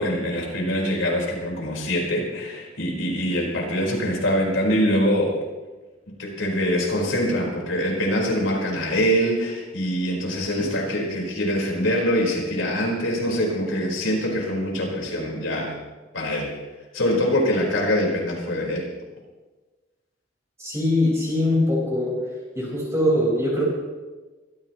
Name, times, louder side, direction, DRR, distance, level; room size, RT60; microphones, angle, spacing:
voice 1, 0.0-5.4 6.1-15.8 16.1-16.6 16.9-18.9, equal, 85° left, -1 dB, 4.5 m, -24 dB
voice 2, 20.6-22.1 22.5-23.7, left 1 dB, 15° right, -6 dB, 4.8 m, -22 dB
23.5 x 15.0 x 3.1 m, 1.2 s
head